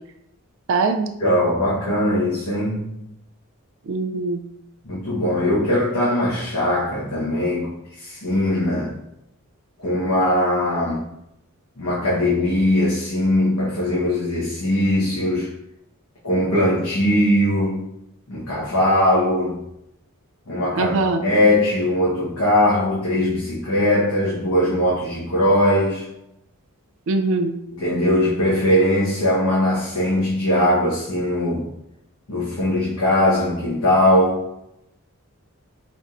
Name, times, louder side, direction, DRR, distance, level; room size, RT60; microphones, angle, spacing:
voice 1, 0.7-1.1 3.9-4.4 20.7-21.2 27.1-27.6, right 3 dB, 60° right, 6 dB, 0.4 m, -22 dB
voice 2, 1.2-2.9 4.8-8.9 9.8-11.0 11.8-15.5 16.2-17.8 18.3-19.6 20.5-26.0 27.8-31.7 32.3-34.4, left 1 dB, 80° left, -8 dB, 1.0 m, -20 dB
3.3 x 2.5 x 4.2 m, 0.82 s
head